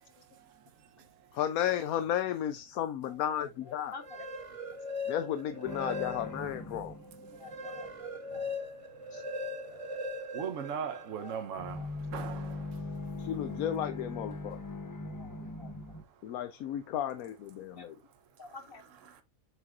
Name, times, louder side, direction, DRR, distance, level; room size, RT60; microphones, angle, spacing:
voice 1, 1.3-3.9 5.1-7.0 13.2-14.6 16.2-18.0, left 10 dB, 85° left, 1.1 m, -33 dB
voice 2, 3.7-4.2 6.7-6.8 7.2-8.5 9.1-9.2 11.2-11.4 11.7-11.9 14.8-16.0 17.7-17.9 18.4-18.8, left 4 dB, 45° left, 1.2 m, -50 dB
sound 1, 3.9-6.6 7.0-11.3, left 2 dB, 30° right, 0.8 m, -40 dB
sound 2, 5.6-7.9 11.5-16.0, left 2 dB, 20° left, 0.6 m, -40 dB
voice 3, 10.3-11.9 12.1-12.6, right 7 dB, 65° right, 1.3 m, -37 dB
7.7 x 5.8 x 2.5 m
omnidirectional pair, 1.5 m